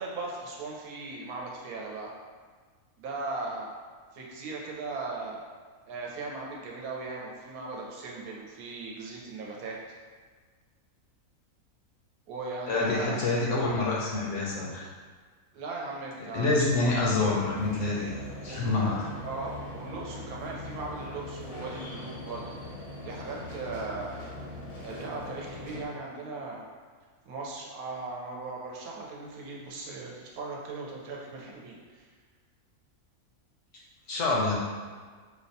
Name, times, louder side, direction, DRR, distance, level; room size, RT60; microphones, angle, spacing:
voice 1, 0.0-2.1 3.0-3.7 4.1-5.4 5.9-9.7 12.3-13.3 15.5-16.5 18.4-18.6 19.2-24.1 24.8-26.6 27.3-32.1, right 3 dB, 80° right, -2 dB, 1.1 m, -38 dB
voice 2, 12.7-14.9 16.3-18.1 18.4-19.1 34.1-34.5, left 3 dB, 65° left, -4 dB, 0.8 m, -27 dB
sound 1, 16.9-25.8, left 1 dB, 90° left, 1.4 m, -41 dB
4.4 x 2.1 x 2.7 m, 1.5 s
omnidirectional pair, 1.6 m